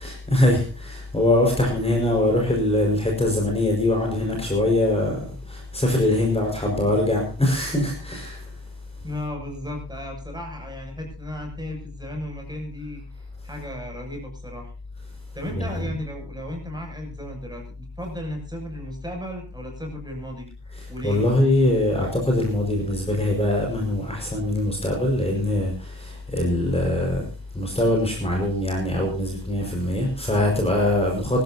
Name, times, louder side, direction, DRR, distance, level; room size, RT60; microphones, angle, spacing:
voice 1, 0.0-8.5 15.5-15.7 20.7-27.3 27.5-31.4, left 1 dB, 15° left, 0 dB, 5.1 m, -23 dB
voice 2, 9.0-14.7 15.3-20.5 20.9-21.2, left 1 dB, 10° right, 2 dB, 7.1 m, -35 dB
24.5 x 13.5 x 2.8 m, 0.36 s
wide cardioid pair, 125°, 41 cm